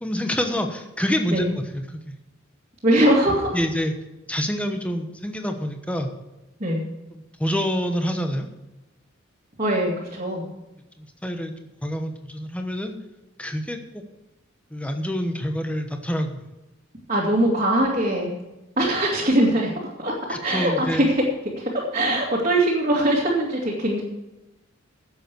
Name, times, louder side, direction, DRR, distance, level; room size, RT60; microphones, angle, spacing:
voice 1, 0.0-2.2 3.5-3.9 4.3-6.1 7.1-8.5 11.0-11.5 11.8-12.9 13.4-14.0 14.7-16.4 20.3-21.0, equal, 5° left, 5 dB, 1.1 m, -27 dB
voice 2, 2.8-3.6 6.6-6.8 9.6-10.4 17.1-18.4 18.8-19.7 20.0-20.1 20.4-21.2 21.6-24.0, right 1 dB, 35° right, -5 dB, 2.4 m, -21 dB
11.0 x 8.0 x 6.8 m, 0.99 s
head